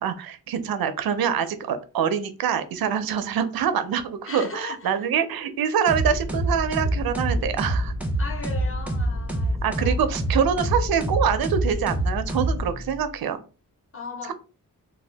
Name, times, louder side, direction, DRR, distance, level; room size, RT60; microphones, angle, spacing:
voice 1, 0.0-7.9 9.6-13.4, right 8 dB, 80° right, 0.5 m, -25 dB
voice 2, 4.3-5.5 8.2-10.0 10.6-10.8 13.9-14.3, left 4 dB, 40° left, 0.6 m, -38 dB
sound 1, 5.9-13.0, right 1 dB, 5° right, 0.5 m, -26 dB
2.7 x 2.2 x 3.3 m
wide cardioid pair, 150°, 35 cm